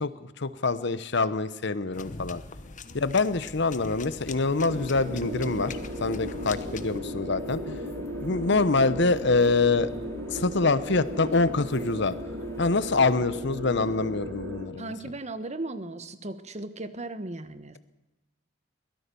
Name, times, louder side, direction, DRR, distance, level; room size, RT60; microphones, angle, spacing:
voice 1, 0.0-2.4 2.9-7.8 8.2-9.9 10.3-12.2 12.6-14.9, left 3 dB, 65° left, 14 dB, 1.0 m, -25 dB
sound 1, 1.9-7.0, left 4 dB, 40° left, 1.1 m, -43 dB
sound 2, 4.1-13.2, left 1 dB, 15° left, 2.6 m, -47 dB
sound 3, 4.6-14.7, equal, 70° right, 4.4 m, -36 dB
voice 2, 14.8-17.8, right 2 dB, 35° right, 11 dB, 1.3 m, -37 dB
23.0 x 17.0 x 7.0 m, 1.1 s
head